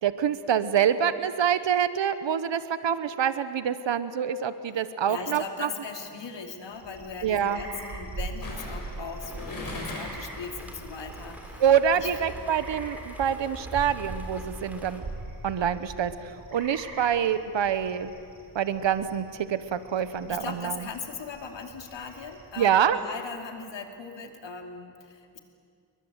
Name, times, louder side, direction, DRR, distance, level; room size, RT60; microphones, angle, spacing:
voice 1, 0.0-5.7 7.2-7.6 11.6-15.1 15.4-18.1 18.5-20.8 22.6-23.0, right 8 dB, 90° right, 12 dB, 1.2 m, -26 dB
voice 2, 4.8-11.6 11.9-12.1 20.3-25.4, left 5 dB, 80° left, 4 dB, 2.7 m, -39 dB
sound 1, 5.8-6.1 8.4-10.4 10.7-10.8, left 2 dB, 50° left, 6.9 m, -39 dB
sound 2, 6.7-22.9, right 3 dB, 50° right, 4.5 m, -42 dB
sound 3, 9.2-15.0, equal, 5° right, 3.5 m, -46 dB
29.0 x 23.0 x 8.2 m, 2.4 s
wide cardioid pair, 135°, 43 cm